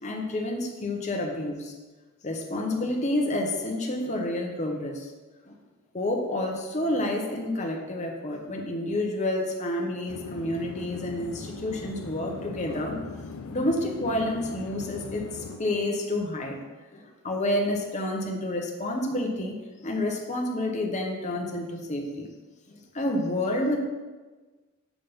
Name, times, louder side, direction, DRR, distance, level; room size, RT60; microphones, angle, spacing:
voice 1, 0.0-1.8 2.2-5.1 5.5-5.6 5.9-13.0 13.5-16.6 16.9-19.5 19.8-22.3 22.7-23.8, left 1 dB, 30° left, 2 dB, 0.8 m, -29 dB
sound 1, 10.1-15.6, left 4 dB, 75° left, 0.4 m, -40 dB
7.1 x 3.7 x 5.3 m, 1.3 s
head